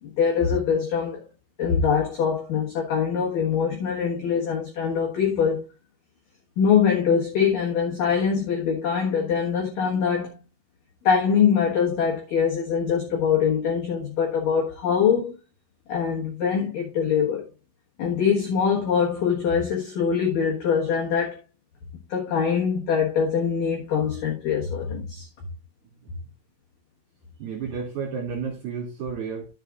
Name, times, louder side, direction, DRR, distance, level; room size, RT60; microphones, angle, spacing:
voice 1, 0.0-1.2 1.6-5.6 6.6-10.4 11.0-15.3 15.9-17.4 18.0-21.4 22.1-25.3, left 7 dB, 65° left, 2.3 m, -23 dB
voice 2, 27.4-29.5, right 6 dB, 60° right, 4.0 m, -32 dB
13.0 x 7.4 x 2.5 m
omnidirectional pair, 5.8 m